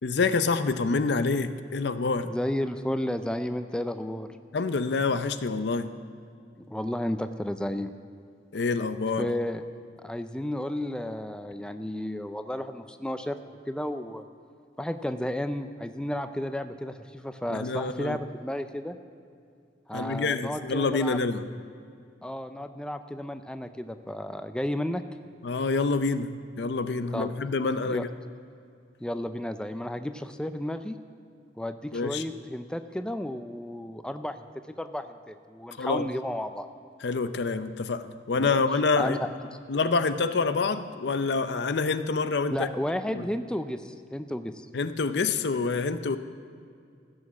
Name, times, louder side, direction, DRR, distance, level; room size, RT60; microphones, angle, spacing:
voice 1, 0.0-2.3 4.5-5.9 8.5-9.3 17.5-18.2 19.9-21.5 25.4-26.3 26.6-28.1 31.9-32.2 35.8-36.1 37.0-39.2 39.7-42.7 43.1-43.3 44.7-46.2, left 4 dB, 70° left, 11 dB, 0.6 m, -27 dB
voice 2, 2.3-4.3 6.7-7.9 9.2-9.6 10.0-13.4 13.7-14.2 14.8-19.0 19.9-21.2 22.2-25.0 27.1-27.3 27.9-28.0 29.0-31.0 31.6-34.5 34.8-36.7 38.4-38.6 39.0-39.3 42.5-44.7, left 1 dB, 5° left, 9 dB, 0.4 m, -32 dB
15.5 x 6.4 x 7.2 m, 2.4 s
head